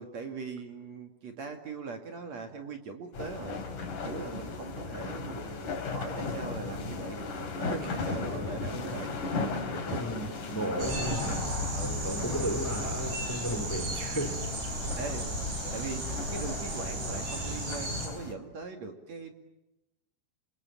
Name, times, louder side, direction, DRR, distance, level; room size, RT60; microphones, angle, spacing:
voice 1, 0.0-3.6 4.0-5.6 5.9-9.2 9.4-10.3 10.6-11.0 11.7-12.1 15.0-15.3 15.7-19.3, right 4 dB, 50° right, 5 dB, 3.2 m, -40 dB
sound 1, 3.1-18.3, left 4 dB, 55° left, 4.7 m, -37 dB
voice 2, 9.9-11.4 12.0-14.5, right 1 dB, 5° left, 10 dB, 1.9 m, -34 dB
sound 2, 10.8-18.1, equal, 85° right, 9.5 m, -34 dB
28.5 x 27.5 x 7.4 m, 0.94 s
omnidirectional pair, 4.3 m